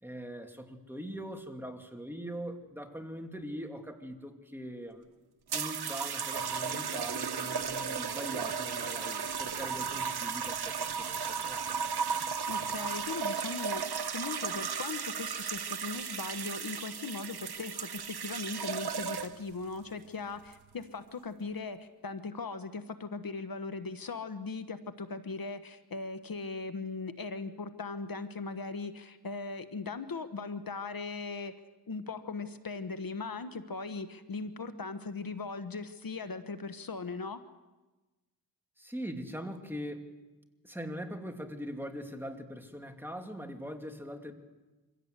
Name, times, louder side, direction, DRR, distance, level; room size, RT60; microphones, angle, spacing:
voice 1, 0.0-5.0 5.5-11.6 38.8-40.0 40.6-44.3, equal, 5° right, 4 dB, 2.7 m, -42 dB
sound 1, 5.5-19.5 20.4-20.7, right 6 dB, 85° right, 1.0 m, -35 dB
voice 2, 12.5-31.5 31.9-37.4, left 4 dB, 65° left, 10 dB, 1.2 m, -39 dB
25.0 x 16.5 x 8.1 m, 1.2 s
cardioid pair, 55°, 37 cm